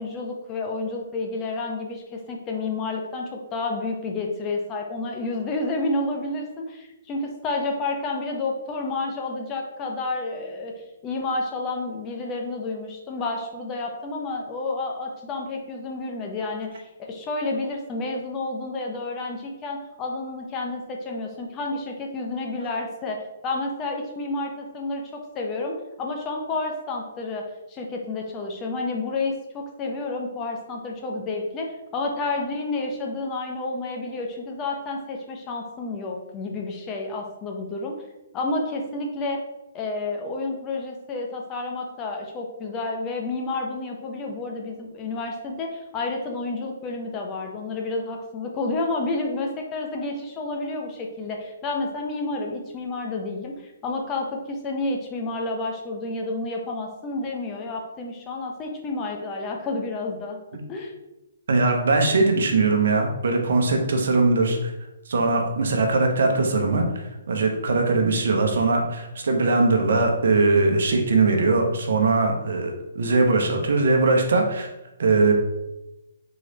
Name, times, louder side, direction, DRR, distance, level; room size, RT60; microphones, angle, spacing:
voice 1, 0.0-10.7 11.0-23.2 23.4-27.4 27.7-37.9 38.3-39.4 39.7-60.4 60.7-60.9, left 3 dB, 25° left, 1 dB, 0.7 m, -30 dB
voice 2, 61.5-64.7 65.1-74.7 75.0-75.3, right 3 dB, 70° right, 3 dB, 0.9 m, -21 dB
3.9 x 3.1 x 4.0 m, 0.95 s
hypercardioid pair, 145°, 0 cm